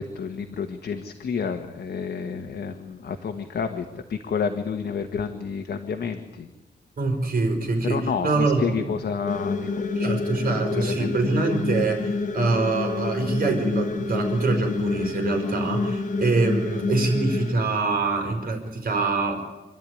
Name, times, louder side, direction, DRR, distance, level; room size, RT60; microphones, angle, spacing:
voice 1, 0.0-3.8 4.1-6.5 7.9-8.3 8.6-9.9 10.7-11.1, left 6 dB, 70° left, 5 dB, 1.4 m, -29 dB
voice 2, 7.0-8.9 9.9-19.4, right 3 dB, 55° right, 4 dB, 4.8 m, -24 dB
sound 1, 9.3-17.5, left 3 dB, 45° left, 1.8 m, -28 dB
26.5 x 12.0 x 9.9 m, 1.1 s
wide cardioid pair, 140°, 18 cm